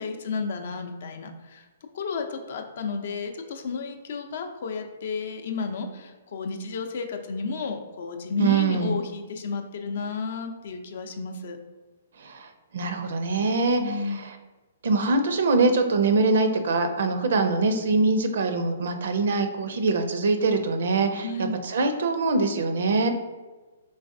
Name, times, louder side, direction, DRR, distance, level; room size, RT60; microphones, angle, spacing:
voice 1, 0.0-1.6 1.9-11.6 13.8-14.2 21.2-21.6, left 4 dB, 60° left, 6 dB, 0.5 m, -32 dB
voice 2, 8.4-9.0 12.2-12.5 12.7-14.3 14.8-21.3 21.6-23.1, right 3 dB, 70° right, 7 dB, 0.5 m, -23 dB
3.9 x 3.2 x 2.6 m, 1.2 s
hypercardioid pair, 150°, 0 cm